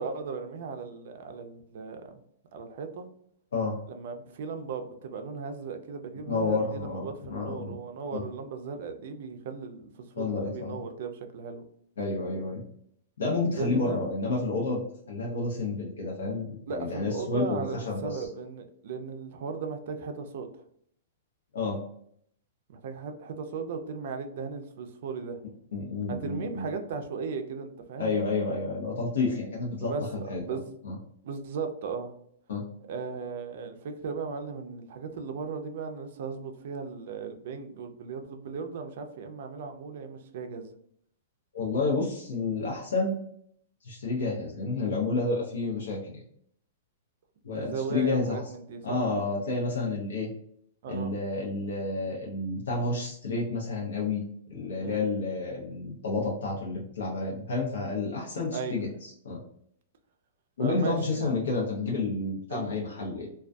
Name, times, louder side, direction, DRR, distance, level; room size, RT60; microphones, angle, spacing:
voice 1, 0.0-2.2 2.5-3.0 3.9-11.6 13.5-14.1 16.7-20.5 22.7-25.4 26.1-28.1 29.8-30.7 31.2-32.2 32.9-40.7 47.5-49.0 50.8-51.1 54.8-55.0 58.5-58.9 60.6-61.4 62.5-62.7, right 5 dB, 55° right, 6 dB, 0.4 m, -36 dB
voice 2, 6.3-7.7 8.1-8.2 10.2-10.8 12.0-12.6 13.2-18.3 21.5-21.8 25.7-26.7 28.0-30.4 30.8-30.9 32.5-32.6 41.5-43.2 43.8-46.1 47.4-48.4 48.8-50.3 50.9-54.2 54.5-59.4 60.6-63.3, left 3 dB, 85° left, -3 dB, 0.6 m, -30 dB
2.2 x 2.2 x 2.5 m, 0.67 s
hypercardioid pair, 160°, 0 cm